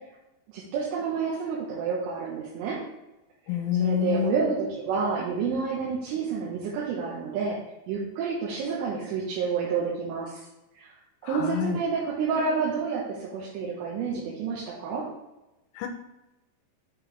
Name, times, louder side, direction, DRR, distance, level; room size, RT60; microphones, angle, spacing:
voice 1, 0.5-2.8 3.7-7.6 7.9-10.4 10.8-10.9 11.2-15.0, right 5 dB, 85° right, -5 dB, 3.6 m, -29 dB
voice 2, 3.5-4.4 11.2-11.8 15.8-15.9, left 8 dB, 85° left, 5 dB, 3.2 m, -27 dB
8.5 x 4.9 x 3.2 m, 0.97 s
omnidirectional pair, 5.6 m